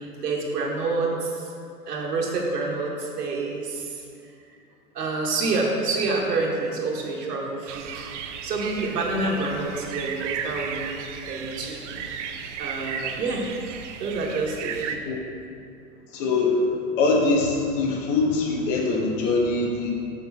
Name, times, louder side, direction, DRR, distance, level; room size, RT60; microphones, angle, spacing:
voice 1, 0.0-1.5 1.9-4.1 4.9-8.1 8.4-11.8 12.6-13.5 14.0-15.0, right 3 dB, 70° right, -1 dB, 1.4 m, -28 dB
sound 1, 7.7-15.0, right 7 dB, 45° right, 0.5 m, -35 dB
voice 2, 16.1-16.6 17.0-19.9, left 3 dB, 50° left, 0 dB, 1.4 m, -23 dB
6.8 x 5.4 x 4.1 m, 2.5 s
figure-of-eight pair, 100°, 49 cm